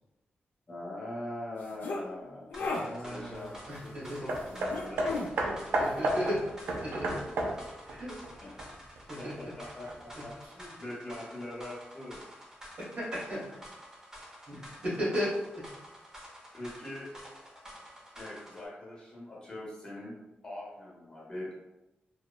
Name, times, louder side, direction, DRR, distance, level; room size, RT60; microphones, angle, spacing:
voice 1, 0.7-2.5 3.0-5.4 8.4-8.5 9.0-12.2 16.5-17.1 18.2-20.1 20.4-21.5, left 1 dB, 25° left, -6 dB, 0.7 m, -42 dB
sound 1, 1.6-2.0 2.5-2.8 4.7-5.3, left 3 dB, 60° left, 0.4 m, -34 dB
sound 2, 2.5-18.7, equal, 15° right, 0.6 m, -50 dB
voice 2, 2.6-4.2 5.4-6.4 6.8-7.1 7.8-8.2 9.1-9.7 10.1-10.2 12.8-13.6 14.5-15.6, equal, 45° right, -6 dB, 0.9 m, -36 dB
Hammer, 4.3-9.0 9.9-10.0, right 1 dB, 85° right, 0.4 m, -32 dB
2.9 x 2.1 x 2.2 m, 0.95 s
wide cardioid pair, 155°, 4 cm